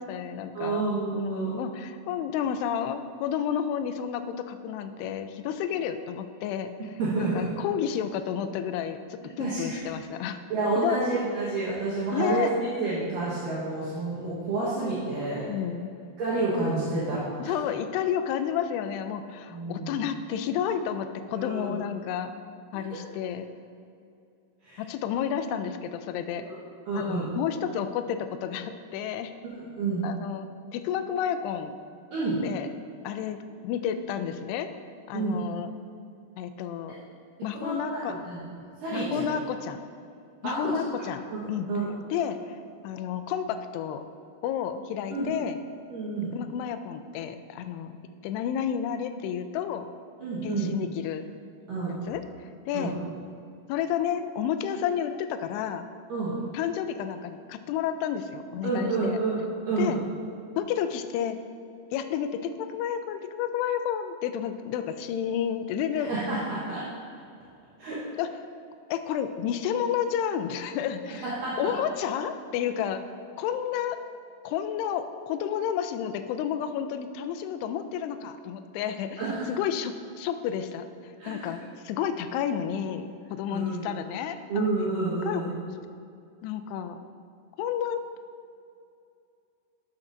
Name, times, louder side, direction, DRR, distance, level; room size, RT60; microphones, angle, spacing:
voice 1, 0.0-0.8 1.1-10.4 10.8-11.0 12.1-12.5 15.5-15.9 17.4-22.3 22.7-23.5 24.8-26.4 26.9-29.3 30.0-31.7 32.4-32.7 33.0-34.7 35.1-35.7 36.4-37.0 37.4-38.1 38.9-39.8 40.4-41.2 41.5-41.7 42.1-44.0 44.4-45.6 46.3-48.0 48.2-49.9 50.4-51.2 52.1-52.2 52.7-53.0 53.7-55.9 56.5-59.2 59.8-60.0 60.6-61.4 61.9-66.1 68.2-68.3 68.9-73.0 73.4-74.0 74.4-79.2 79.5-84.7 85.2-85.4 86.4-87.0 87.6-88.0, left 9 dB, 85° left, 9 dB, 2.6 m, -31 dB
voice 2, 0.5-1.5 7.0-7.5 9.4-9.8 10.5-15.5 16.2-17.5 19.5-20.0 21.3-21.8 24.6-24.8 26.5-26.6 26.9-27.3 29.5-30.0 32.1-32.4 35.1-35.4 36.9-37.0 37.5-38.4 38.8-39.2 40.4-40.7 41.0-41.9 45.1-45.3 45.9-46.3 50.2-50.7 51.7-51.9 52.7-52.9 56.1-56.3 58.6-59.9 65.9-66.8 67.8-68.0 71.1-71.7 79.2-79.5 81.2-81.5 83.5-84.0 84.5-85.5, right 3 dB, 65° right, -9 dB, 2.7 m, -29 dB
13.0 x 7.2 x 2.6 m, 2.5 s
omnidirectional pair, 4.7 m